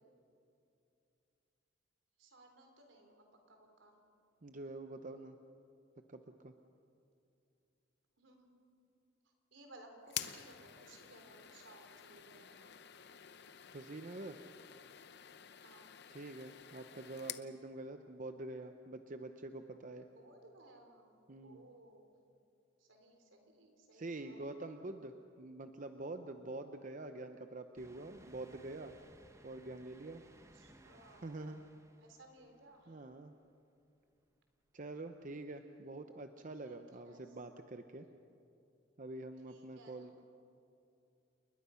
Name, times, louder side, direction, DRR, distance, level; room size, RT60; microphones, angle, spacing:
voice 1, 2.2-4.0 8.2-8.6 9.2-12.8 15.6-15.9 20.1-21.1 21.4-22.1 22.8-24.4 25.4-25.5 30.5-31.6 32.0-33.0 36.6-36.8 37.0-37.4 39.5-40.2, right 2 dB, 80° right, 4 dB, 3.6 m, -60 dB
voice 2, 4.4-5.4 6.1-6.5 13.7-14.4 16.1-20.1 21.3-21.6 23.9-29.0 29.4-30.2 31.2-31.6 32.9-33.3 34.7-38.1 39.0-40.2, right 2 dB, 40° right, 7 dB, 0.7 m, -46 dB
sound 1, 10.1-17.5, left 11 dB, 60° left, 0.8 m, -49 dB
sound 2, 27.8-33.3 33.8-33.9 35.3-35.4, right 1 dB, 15° right, 0.9 m, -63 dB
29.0 x 21.0 x 5.7 m, 2.6 s
head